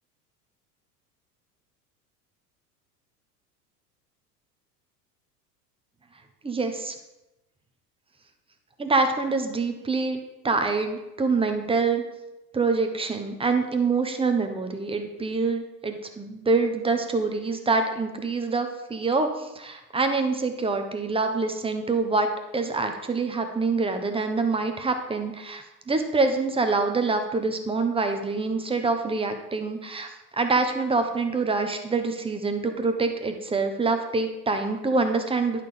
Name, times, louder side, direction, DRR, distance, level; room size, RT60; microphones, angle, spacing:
voice 1, 6.4-6.9 8.8-10.2 10.4-12.0 12.5-35.6, right 3 dB, 10° right, 6 dB, 0.9 m, -25 dB
10.5 x 4.3 x 5.0 m, 0.97 s
figure-of-eight pair, 80°, 49 cm